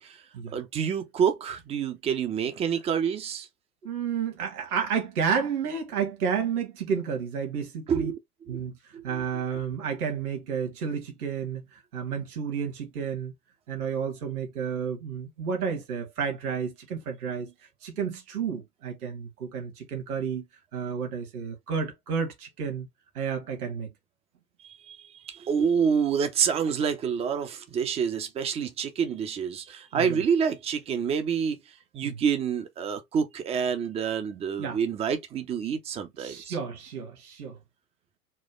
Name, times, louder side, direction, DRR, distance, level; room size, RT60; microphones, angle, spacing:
voice 1, 0.5-3.5 7.9-8.2 8.5-8.6 8.9-9.2 24.6-31.6 31.9-36.6, right 7 dB, 15° right, 0.4 m, -28 dB
voice 2, 3.8-8.1 8.5-8.8 9.0-13.3 13.7-17.5 17.8-20.4 20.7-22.9 23.1-23.9 29.9-30.2 32.0-32.1 34.6-34.8 36.2-37.6, right 6 dB, 65° right, 1.6 m, -31 dB
4.4 x 2.2 x 3.0 m
figure-of-eight pair, 95°, 48 cm